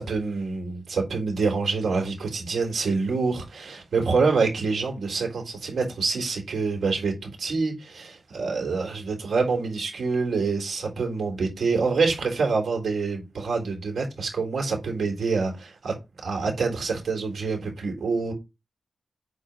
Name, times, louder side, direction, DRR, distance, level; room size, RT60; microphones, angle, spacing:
voice 1, 0.0-15.9 16.2-18.3, right 4 dB, 90° right, 3.8 m, -26 dB
8.1 x 5.0 x 5.1 m
wide cardioid pair, 150°, 0 cm